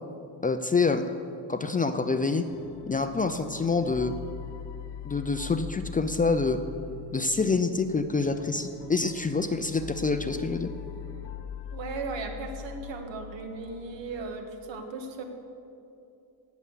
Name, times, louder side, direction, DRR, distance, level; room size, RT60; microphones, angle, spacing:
voice 1, 0.4-1.0 1.5-2.5 2.9-4.1 5.0-6.6 7.1-10.7, left 4 dB, 20° left, 8 dB, 0.5 m, -26 dB
sound 1, 2.5-14.2, left 8 dB, 70° left, 1.1 m, -42 dB
voice 2, 11.7-15.2, right 3 dB, 75° right, 4 dB, 2.0 m, -37 dB
17.5 x 7.1 x 8.5 m, 2.6 s
cardioid pair, 140°, 45 cm